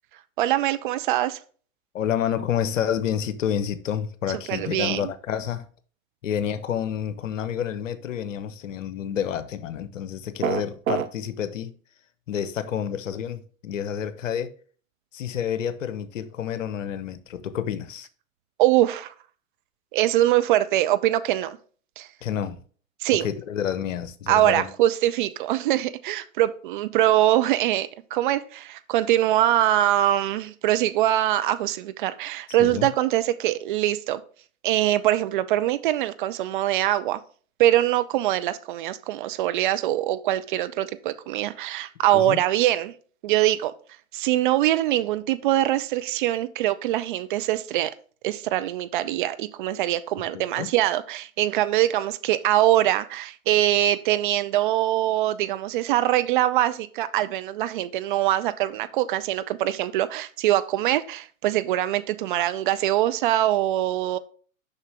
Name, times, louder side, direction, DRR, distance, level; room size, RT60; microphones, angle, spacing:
voice 1, 0.4-1.4 4.5-5.1 18.6-19.1 19.9-21.6 22.0-22.1 23.0-23.3 24.3-34.2 34.6-37.2 37.6-42.9 43.2-43.7 44.1-47.9 48.2-64.2, right 13 dB, 40° right, 0.5 m, -23 dB
voice 2, 1.9-5.7 6.2-11.8 12.3-14.5 15.1-18.1 22.2-22.6 23.1-24.7 32.6-32.9 42.1-42.4 50.3-50.7, left 9 dB, 65° left, 0.9 m, -29 dB
sound 1, 10.4-11.1, right 11 dB, 75° right, 0.7 m, -25 dB
6.8 x 5.7 x 3.4 m
figure-of-eight pair, 100°, 41 cm